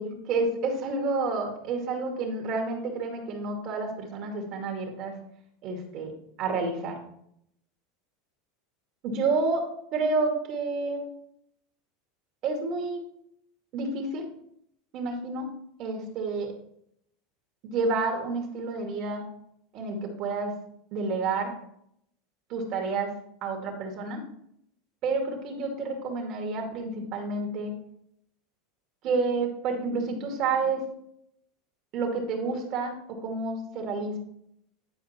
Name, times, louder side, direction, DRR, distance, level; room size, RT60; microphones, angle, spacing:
voice 1, 0.3-5.1 5.6-6.1 6.4-7.0 9.0-9.6 9.9-11.0 12.4-13.0 13.7-14.2 14.9-15.5 15.8-16.5 17.6-19.2 19.7-20.5 20.9-21.5 22.5-23.1 23.4-24.2 25.0-27.7 29.0-30.8 31.9-32.9 33.2-34.2, right 3 dB, 50° right, 2 dB, 2.4 m, -29 dB
10.5 x 4.5 x 4.4 m, 0.72 s
supercardioid pair, 125°, 0 cm